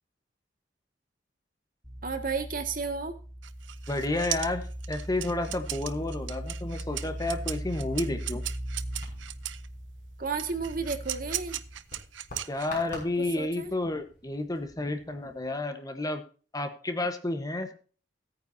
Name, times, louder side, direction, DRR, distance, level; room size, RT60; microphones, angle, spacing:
sound 1, 1.8-11.8, right 1 dB, ahead, 3.4 m, -39 dB
voice 1, 2.0-3.1 10.2-11.6 13.4-13.7, right 4 dB, 50° right, 6 dB, 1.8 m, -32 dB
sound 2, 3.4-9.7 10.4-13.0, right 13 dB, 85° right, 0.7 m, -37 dB
voice 2, 3.9-8.4 12.5-16.2 16.5-17.7, left 2 dB, 20° left, 7 dB, 1.1 m, -31 dB
sound 3, 8.9-15.5, left 2 dB, 45° left, 6.0 m, -48 dB
16.5 x 9.4 x 2.7 m, 0.38 s
head